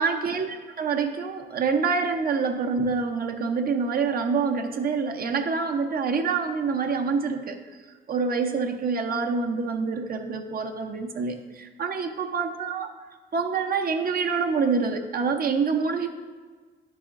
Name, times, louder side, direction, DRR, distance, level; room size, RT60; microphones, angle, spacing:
voice 1, 0.0-7.6 8.1-12.9 13.3-16.1, right 5 dB, 50° right, 4 dB, 0.7 m, -26 dB
10.0 x 4.9 x 2.5 m, 1.4 s
cardioid pair, 90°, 20 cm